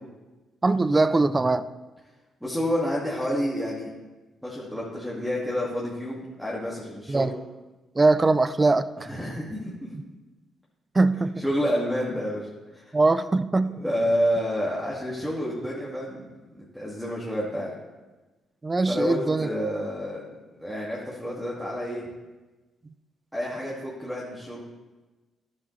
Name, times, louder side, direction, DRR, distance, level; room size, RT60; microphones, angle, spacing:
voice 1, 0.6-1.7 7.1-7.3 8.0-8.9 10.9-11.4 12.9-13.8 18.6-19.5, right 3 dB, 30° right, 14 dB, 0.4 m, -21 dB
voice 2, 2.4-3.9 4.4-7.3 9.0-9.9 11.2-12.4 12.7-12.9 13.8-16.3 16.6-17.7 18.9-20.2 20.6-22.1 23.3-24.6, equal, ahead, -7 dB, 2.1 m, -29 dB
11.0 x 8.1 x 3.3 m, 1.2 s
supercardioid pair, 60°, 0 cm